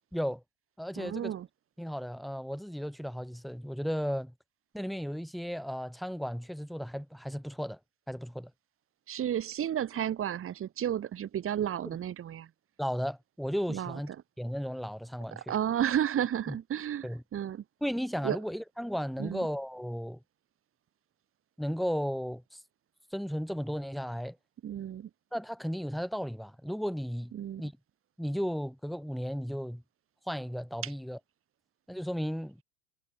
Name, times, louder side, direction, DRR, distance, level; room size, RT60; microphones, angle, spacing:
voice 1, 0.1-0.4 0.8-1.4 1.8-4.3 4.7-7.8 8.1-8.5 12.8-14.1 14.4-15.5 16.5-16.6 17.0-17.2 17.8-20.2 21.6-22.6 23.1-24.4 25.3-27.3 27.6-27.7 28.2-29.8 30.3-31.2 31.9-32.6, equal, ahead, 2.8 m, -34 dB
voice 2, 1.0-1.5 9.1-12.5 13.7-14.0 15.3-17.6 18.2-18.4 19.2-19.4 24.6-25.1 27.3-27.6 30.8-30.9, right 10 dB, 30° right, 5.6 m, -32 dB
hypercardioid pair, 90°, 42 cm